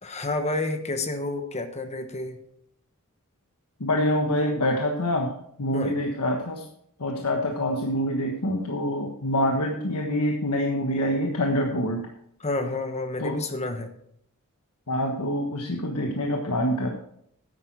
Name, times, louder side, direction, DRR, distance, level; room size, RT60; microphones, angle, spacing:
voice 1, 0.0-2.4 5.7-6.0 12.4-13.9, left 2 dB, 30° left, 8 dB, 1.1 m, -30 dB
voice 2, 3.8-5.3 5.6-6.6 7.0-12.1 13.2-13.4 14.9-16.9, left 1 dB, 85° left, 2 dB, 1.3 m, -26 dB
10.0 x 9.0 x 4.6 m, 0.71 s
head